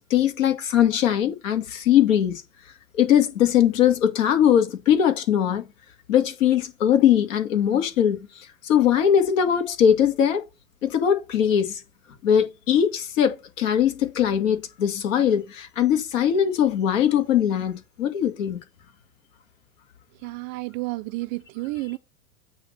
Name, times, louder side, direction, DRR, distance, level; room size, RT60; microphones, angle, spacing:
voice 1, 0.1-2.4 2.9-5.7 6.1-10.4 10.8-11.8 12.2-18.6, left 9 dB, 65° left, 2.0 m, -21 dB
voice 2, 20.2-22.0, right 21 dB, 35° right, 0.4 m, -31 dB
8.7 x 2.9 x 6.3 m
hypercardioid pair, 110°, 42 cm